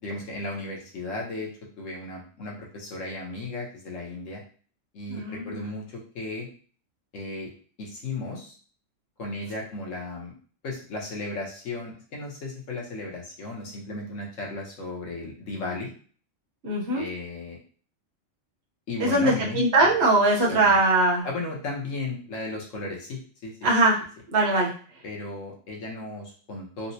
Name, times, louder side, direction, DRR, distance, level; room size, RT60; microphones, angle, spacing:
voice 1, 0.0-1.5 1.8-4.4 4.9-6.5 7.1-7.5 7.8-8.5 9.2-10.3 10.6-15.9 16.9-17.6 18.9-19.9 20.5-20.8 21.2-23.7 25.0-26.9, left 2 dB, 70° left, -2 dB, 1.3 m, -35 dB
voice 2, 5.1-5.6 16.6-17.0 19.0-21.3 23.6-24.0 24.3-24.7, right 2 dB, 55° right, -4 dB, 1.1 m, -21 dB
4.0 x 2.1 x 2.7 m, 0.43 s
omnidirectional pair, 1.4 m